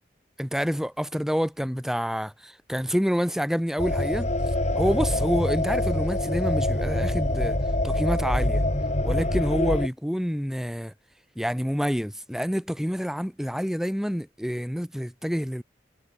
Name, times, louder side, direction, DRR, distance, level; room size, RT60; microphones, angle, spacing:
voice 1, 0.4-4.3 4.8-7.6 7.8-8.6 9.0-10.9 11.4-15.6, equal, ahead, 7.4 m, -27 dB
sound 1, 3.8-9.9, left 1 dB, 35° left, 1.9 m, -25 dB
head